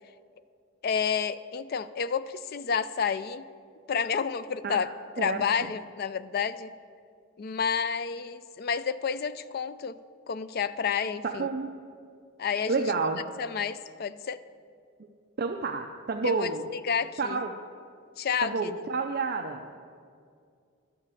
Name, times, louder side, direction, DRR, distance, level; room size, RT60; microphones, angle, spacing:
voice 1, 0.8-3.5 3.9-4.9 5.2-6.7 7.4-9.9 10.3-11.5 12.4-12.8 13.4-14.4 16.2-17.4 18.2-18.7, left 6 dB, 45° left, 14 dB, 0.3 m, -30 dB
voice 2, 11.4-11.7 12.7-13.2 15.4-16.7 17.2-17.6 18.4-19.6, right 4 dB, 45° right, 4 dB, 0.5 m, -29 dB
12.0 x 5.8 x 8.2 m, 2.3 s
head